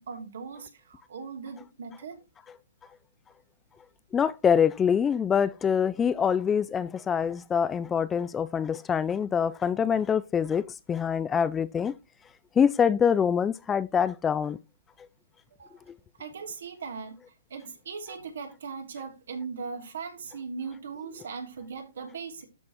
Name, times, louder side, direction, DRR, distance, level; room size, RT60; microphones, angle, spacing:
voice 1, 0.0-2.2 15.6-15.7 16.2-17.2 17.5-22.4, right 5 dB, 65° right, 2.9 m, -39 dB
voice 2, 4.1-11.9 12.6-14.6, left 7 dB, 15° left, 0.4 m, -25 dB
12.5 x 5.3 x 2.9 m
hypercardioid pair, 135°, 0 cm